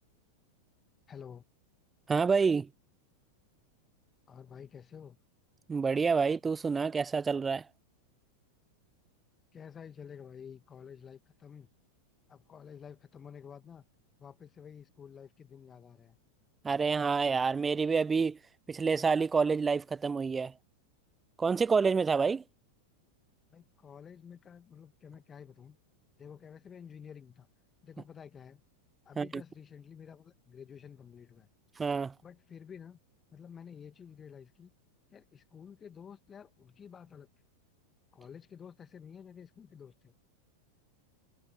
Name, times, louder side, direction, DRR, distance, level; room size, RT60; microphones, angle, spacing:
voice 1, 1.1-1.5 4.3-5.2 9.5-11.7 12.3-13.9 14.2-16.2 23.5-25.8 26.2-27.5 27.8-28.6 29.1-31.5 32.2-33.0 33.3-34.7 35.1-37.3 38.1-40.1, left 7 dB, 20° left, 1.8 m, -50 dB
voice 2, 2.1-2.7 5.7-7.7 16.6-18.4 18.7-20.5 21.4-22.4 29.2-29.4 31.8-32.1, right 5 dB, 15° right, 0.4 m, -28 dB
figure-of-eight pair, 90°, 0 cm